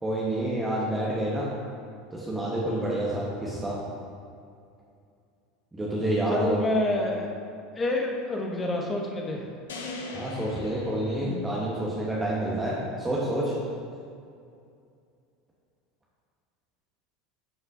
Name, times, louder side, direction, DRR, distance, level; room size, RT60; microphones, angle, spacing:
voice 1, 0.0-1.5 2.1-3.8 5.7-6.6 10.1-13.5, right 1 dB, 10° right, -6 dB, 1.3 m, -28 dB
voice 2, 6.3-7.3 7.7-9.5 11.2-11.6, left 2 dB, 25° left, 0 dB, 1.2 m, -28 dB
sound 1, 9.7-12.0, left 2 dB, 70° left, 0.8 m, -40 dB
11.0 x 5.8 x 2.7 m, 2.4 s
figure-of-eight pair, 75°, 0 cm